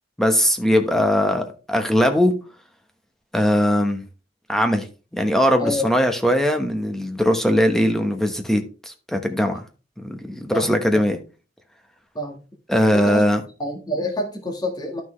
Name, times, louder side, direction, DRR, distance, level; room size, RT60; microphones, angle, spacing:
voice 1, 0.2-2.3 3.3-4.0 4.5-4.9 5.1-9.6 10.0-11.2 12.7-13.4, equal, ahead, 1.1 m, -20 dB
voice 2, 10.5-11.0 12.1-12.4 12.9-13.2 13.6-15.0, left 1 dB, 20° left, 1.6 m, -27 dB
11.5 x 6.1 x 3.2 m
head